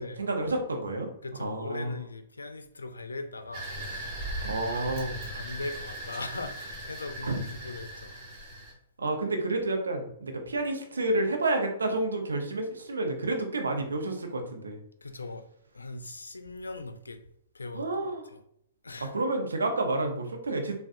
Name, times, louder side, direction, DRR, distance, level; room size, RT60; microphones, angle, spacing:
voice 1, 0.2-1.1 1.4-1.9 4.4-5.2 7.2-7.4 9.0-14.8 17.7-18.2 19.0-20.7, right 2 dB, 85° right, 4 dB, 0.7 m, -30 dB
voice 2, 1.2-4.2 4.5-8.6 15.0-15.5 15.7-17.2 17.5-18.4 18.8-19.1, left 2 dB, 90° left, 8 dB, 0.4 m, -40 dB
sound 1, 3.5-8.7, right 1 dB, 40° right, 1.3 m, -38 dB
3.6 x 2.2 x 2.5 m, 0.70 s
hypercardioid pair, 125°, 0 cm